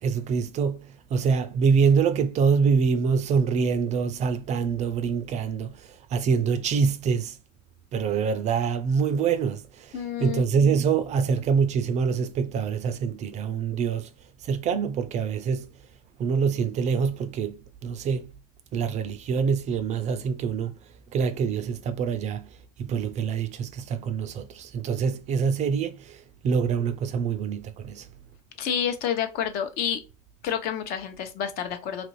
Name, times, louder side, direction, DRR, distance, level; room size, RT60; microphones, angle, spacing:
voice 1, 0.0-7.4 7.9-14.1 14.4-15.8 16.2-18.3 18.7-20.7 21.1-22.5 22.8-28.1, right 6 dB, 35° right, 0.4 m, -25 dB
voice 2, 9.9-10.4 28.6-30.0 30.4-32.1, left 8 dB, 50° left, 0.8 m, -29 dB
3.0 x 2.5 x 3.0 m
hypercardioid pair, 105°, 20 cm